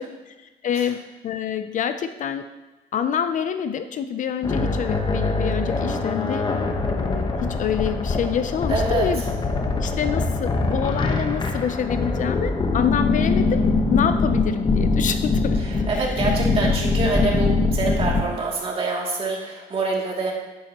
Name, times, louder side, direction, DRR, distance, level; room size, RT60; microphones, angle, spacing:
voice 1, 0.6-2.4 2.9-6.5 6.9-9.2 9.8-15.6 15.9-16.3, left 8 dB, 50° left, 9 dB, 0.5 m, -27 dB
sound 1, 4.4-18.2, left 3 dB, 25° left, 1.1 m, -23 dB
voice 2, 8.7-9.1 15.6-20.3, right 3 dB, 35° right, -2 dB, 2.6 m, -26 dB
10.0 x 9.6 x 3.0 m, 1.1 s
cardioid pair, 110°, 17 cm